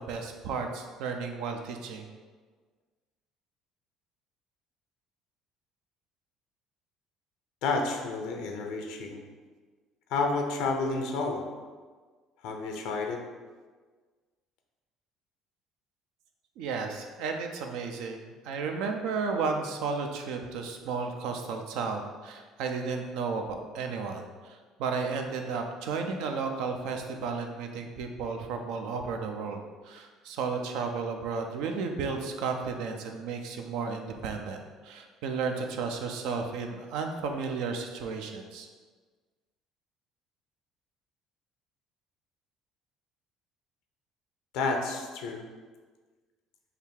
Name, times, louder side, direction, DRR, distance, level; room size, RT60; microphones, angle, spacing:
voice 1, 0.0-2.0 16.6-29.6 29.8-38.7, right 5 dB, 75° right, 4 dB, 0.4 m, -33 dB
voice 2, 7.6-9.2 10.1-11.4 12.4-13.2 44.5-45.5, left 3 dB, 75° left, 3 dB, 0.5 m, -30 dB
3.3 x 2.4 x 4.4 m, 1.4 s
supercardioid pair, 70°, 0 cm